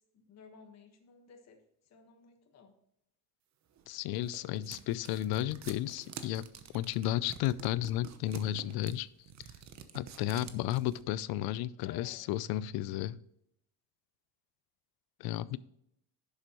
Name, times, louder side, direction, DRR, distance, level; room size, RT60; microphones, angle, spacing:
voice 1, 0.0-1.6 1.8-2.7 11.8-12.2 15.4-15.6, left 6 dB, 45° left, 1.5 m, -55 dB
sound 1, 3.8-11.0, right 8 dB, 45° right, 1.0 m, -49 dB
voice 2, 3.9-6.5 6.7-9.1 9.9-13.2 15.2-15.6, left 13 dB, 80° left, 0.5 m, -33 dB
10.5 x 7.1 x 3.0 m
cardioid pair, 135°, 37 cm